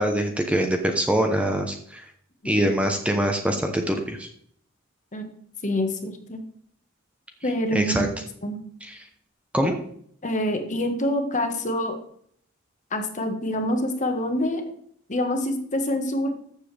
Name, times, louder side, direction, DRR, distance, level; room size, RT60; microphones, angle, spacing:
voice 1, 0.0-2.0 2.4-4.3 7.7-8.1 8.9-9.0 9.5-9.8, equal, 5° right, 4 dB, 0.9 m, -23 dB
voice 2, 5.6-6.4 7.4-8.1 8.4-8.6 10.2-12.0 12.9-14.6 15.1-16.3, left 1 dB, 35° left, 5 dB, 1.5 m, -26 dB
13.5 x 7.4 x 3.4 m, 0.64 s
head